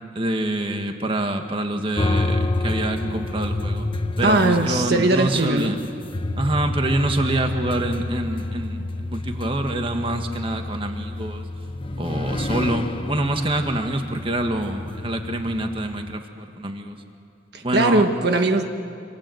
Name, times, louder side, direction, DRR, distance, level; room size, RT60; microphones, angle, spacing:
voice 1, 0.1-3.9 4.2-5.8 6.4-11.4 12.0-17.0 17.6-18.1, right 1 dB, 30° right, 5 dB, 1.6 m, -26 dB
sound 1, 2.0-16.2, left 2 dB, 30° left, 0.9 m, -29 dB
voice 2, 4.2-5.7 17.5-18.6, right 2 dB, 60° right, 5 dB, 1.4 m, -20 dB
27.5 x 26.0 x 7.9 m, 2.4 s
head